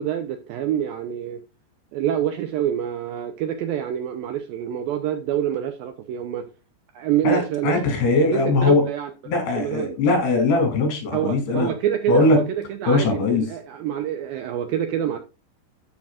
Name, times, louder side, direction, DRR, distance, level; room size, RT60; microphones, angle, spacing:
voice 1, 0.0-1.4 1.9-6.5 7.0-7.8 8.3-9.1 9.6-9.9 11.1-15.2, right 10 dB, 80° right, 2.1 m, -26 dB
voice 2, 7.2-8.8 9.3-11.7 12.1-12.4 12.9-13.5, left 3 dB, 70° left, 4.7 m, -20 dB
13.0 x 6.1 x 2.5 m
omnidirectional pair, 4.9 m